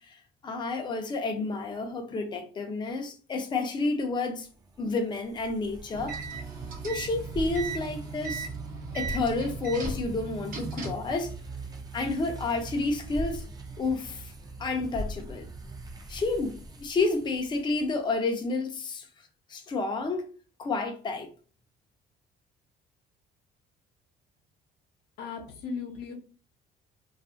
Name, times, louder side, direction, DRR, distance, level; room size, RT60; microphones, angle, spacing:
voice 1, 0.1-4.5 4.8-6.2 6.8-8.5 8.9-11.3 11.9-13.4 13.8-14.3 14.6-15.5 16.1-19.1 19.5-20.3 20.6-21.3, left 3 dB, 25° left, 0.5 m, -30 dB
sound 1, 4.6-18.0, right 1 dB, 25° right, 0.5 m, -40 dB
sound 2, 5.9-11.1, right 5 dB, 55° right, 0.8 m, -38 dB
voice 2, 25.2-26.1, left 5 dB, 80° left, 0.7 m, -37 dB
2.6 x 2.4 x 2.5 m
cardioid pair, 110°, 17 cm